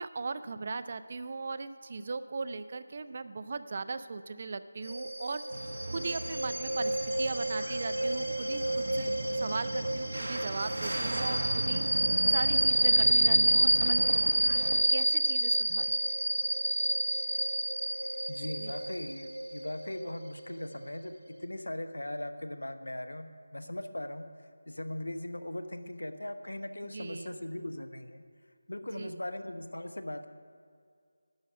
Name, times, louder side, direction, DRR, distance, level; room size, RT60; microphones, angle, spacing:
voice 1, 0.0-5.4 5.9-11.9 12.3-16.0 18.6-18.8 26.8-27.4 28.8-29.2, right 4 dB, 40° right, 13 dB, 0.4 m, -38 dB
sound 1, 4.8-21.1, right 1 dB, 90° right, 1.5 m, -29 dB
sound 2, 5.5-14.8, right 1 dB, 65° right, 1.1 m, -37 dB
voice 2, 11.0-11.3 18.3-24.3 24.7-28.2 28.7-30.3, left 1 dB, 85° left, 10 dB, 0.8 m, -39 dB
12.0 x 6.1 x 7.9 m, 2.2 s
figure-of-eight pair, 165°, 0 cm